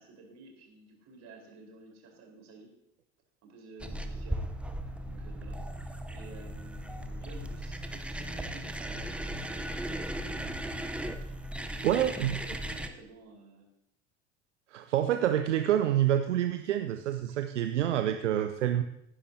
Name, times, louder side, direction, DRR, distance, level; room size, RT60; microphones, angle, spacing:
voice 1, 0.0-2.7 3.4-4.4 5.0-11.0 11.5-12.0 12.4-13.7 17.3-17.4, right 3 dB, 50° right, 0 dB, 4.3 m, -52 dB
sound 1, 3.8-12.9, right 1 dB, 5° right, 0.8 m, -37 dB
voice 2, 11.8-12.4 14.7-18.8, right 11 dB, 80° right, 7 dB, 0.6 m, -27 dB
18.0 x 10.0 x 2.8 m, 0.77 s
figure-of-eight pair, 70°, 36 cm